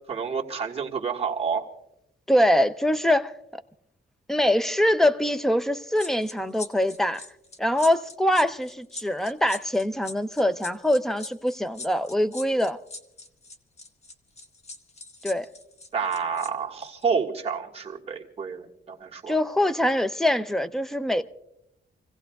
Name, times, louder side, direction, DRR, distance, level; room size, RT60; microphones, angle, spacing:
voice 1, 0.1-1.7 15.9-19.4, right 6 dB, 30° right, 1.6 m, -29 dB
voice 2, 2.3-3.3 4.3-7.2 7.6-12.8 15.2-15.5 19.3-21.2, left 1 dB, ahead, 0.5 m, -23 dB
sound 1, 6.0-16.5 16.8-17.0, left 3 dB, 35° left, 1.2 m, -41 dB
28.0 x 16.5 x 2.3 m
wide cardioid pair, 160°, 19 cm